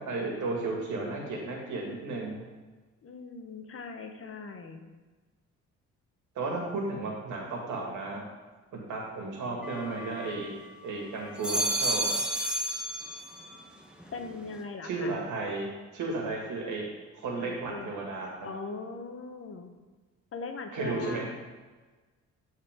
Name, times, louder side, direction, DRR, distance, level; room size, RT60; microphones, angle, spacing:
voice 1, 0.1-2.4 6.4-8.2 8.7-10.5 10.8-12.1 14.8-15.7 15.9-16.9 17.1-18.3 20.7-21.4, right 3 dB, 80° right, -1 dB, 2.2 m, -33 dB
voice 2, 3.0-4.8 14.1-15.1 17.4-18.0 18.4-19.7 20.3-21.4, left 4 dB, 45° left, 6 dB, 1.1 m, -40 dB
sound 1, 9.6-10.8 11.2-13.6 14.0-14.6, right 1 dB, 5° right, 1.1 m, -32 dB
13.0 x 4.5 x 3.8 m, 1.3 s
cardioid pair, 90°, 30 cm